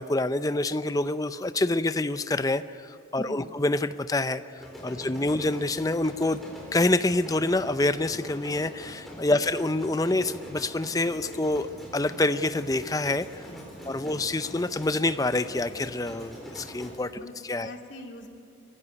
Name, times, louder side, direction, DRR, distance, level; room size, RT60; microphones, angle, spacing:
voice 1, 0.0-4.4 4.8-6.4 6.7-11.7 11.9-13.3 13.9-17.1 17.5-17.7, left 2 dB, 20° left, 12 dB, 0.5 m, -26 dB
voice 2, 3.2-3.6 4.9-5.1 9.3-9.5 13.4-14.2 17.2-17.3 17.6-18.3, left 1 dB, 70° left, 2 dB, 2.7 m, -45 dB
sound 1, 4.6-16.9, equal, ahead, 4.1 m, -43 dB
22.5 x 15.5 x 9.6 m, 2.6 s
head